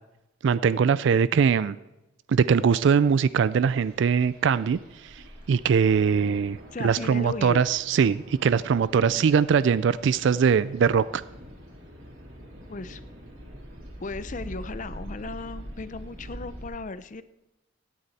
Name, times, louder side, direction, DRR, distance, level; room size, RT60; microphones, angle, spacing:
voice 1, 0.4-1.8 2.3-5.2 5.5-11.2, right 6 dB, 60° right, 17 dB, 0.3 m, -22 dB
sound 1, 3.3-16.6, equal, 80° right, 3.6 m, -44 dB
voice 2, 6.7-7.6 9.0-9.3 12.7-13.0 14.0-17.2, left 3 dB, 35° left, 14 dB, 0.5 m, -36 dB
17.0 x 9.9 x 4.1 m, 0.96 s
head